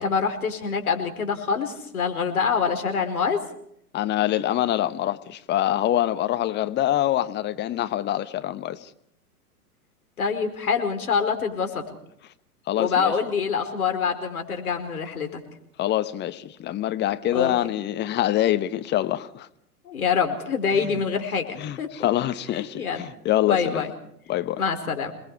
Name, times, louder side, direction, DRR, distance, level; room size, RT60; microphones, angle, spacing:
voice 1, 0.0-3.4 10.2-11.8 12.8-15.4 17.3-17.5 19.8-21.9 22.6-23.0 23.5-23.9 24.6-25.1, left 6 dB, 70° left, 4.9 m, -25 dB
voice 2, 3.9-8.9 12.7-13.1 15.8-19.5 20.8-20.9 21.6-23.8 24.3-24.6, left 13 dB, 25° left, 1.2 m, -25 dB
27.5 x 21.0 x 4.9 m
figure-of-eight pair, 105°, 45 cm